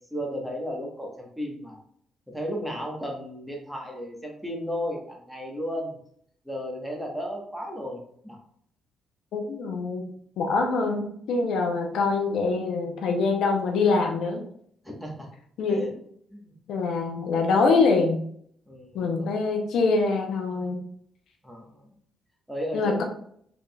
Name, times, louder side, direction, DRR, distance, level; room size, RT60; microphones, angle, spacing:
voice 1, 0.1-1.8 2.3-6.0 6.4-8.4 14.8-15.3 15.7-15.9 16.3-16.5 18.7-19.3 21.4-21.9 22.5-23.0, equal, 5° right, -1 dB, 1.1 m, -34 dB
voice 2, 9.3-10.0 10.4-14.4 15.6-15.9 16.7-18.2 18.9-20.8 22.7-23.0, left 4 dB, 75° left, 3 dB, 0.7 m, -24 dB
3.9 x 3.5 x 2.3 m, 0.65 s
cardioid pair, 90°, 0 cm